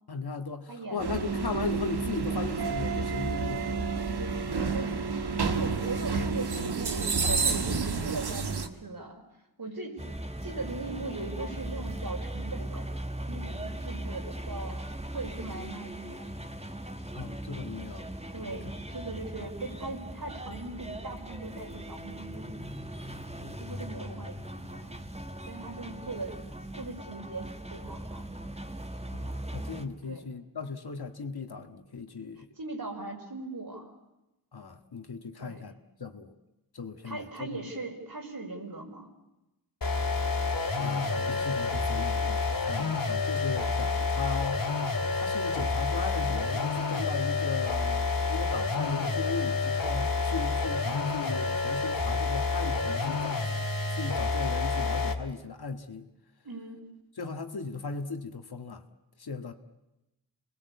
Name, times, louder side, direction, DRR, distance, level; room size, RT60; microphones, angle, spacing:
voice 1, 0.1-4.0 17.1-18.1 18.5-18.6 23.7-24.0 29.1-32.5 34.5-36.3 36.7-37.6 40.8-44.7 45.1-53.5 53.9-56.1 57.2-58.8 59.2-59.5, left 4 dB, 75° left, 6 dB, 1.9 m, -37 dB
voice 2, 0.7-1.4 4.7-5.0 5.4-9.2 9.6-10.1 10.4-12.9 13.3-16.3 18.3-22.6 23.4-25.0 25.5-28.3 30.0-30.3 32.6-33.9 35.4-35.6 37.0-39.1 56.4-56.8, right 3 dB, 65° right, 2 dB, 5.3 m, -39 dB
sound 1, 1.0-8.7, right 4 dB, 85° right, 1.6 m, -30 dB
sound 2, 10.0-29.9, right 1 dB, 15° right, 1.9 m, -39 dB
sound 3, 39.8-55.3, left 3 dB, 60° left, 2.3 m, -29 dB
28.0 x 20.5 x 8.4 m, 0.97 s
wide cardioid pair, 55°, 38 cm